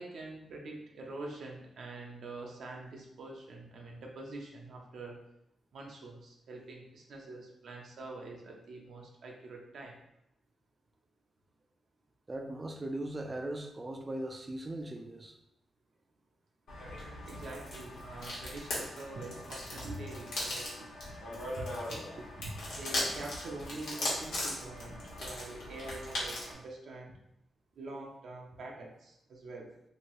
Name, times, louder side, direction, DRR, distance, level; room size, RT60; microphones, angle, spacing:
voice 1, 0.0-5.2 5.7-10.0 17.2-20.9 21.6-27.1 27.8-29.7, right 2 dB, 70° right, 0 dB, 0.5 m, -45 dB
voice 2, 12.3-15.3, right 1 dB, 25° right, 4 dB, 0.4 m, -39 dB
sound 1, 16.7-26.5, left 1 dB, 85° left, 1.2 m, -39 dB
2.9 x 2.7 x 3.0 m, 0.81 s
cardioid pair, 95°, 0 cm